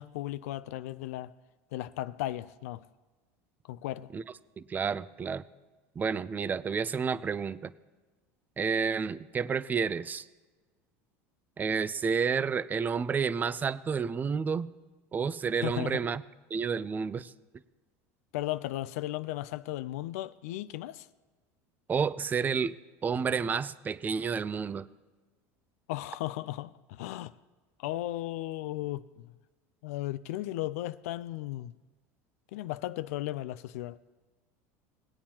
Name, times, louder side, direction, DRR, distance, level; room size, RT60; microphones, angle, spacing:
voice 1, 0.0-1.3 1.7-2.8 3.7-4.1 15.6-16.1 18.3-21.1 25.9-27.3 27.8-29.3 29.8-31.7 32.5-34.0, left 15 dB, 80° left, 0.4 m, -36 dB
voice 2, 4.7-5.4 6.0-7.7 8.6-10.3 11.6-14.7 15.1-16.2 16.5-17.3 21.9-22.7 23.0-24.9, right 6 dB, 20° right, 0.4 m, -30 dB
18.5 x 8.7 x 2.9 m
supercardioid pair, 105°, 8 cm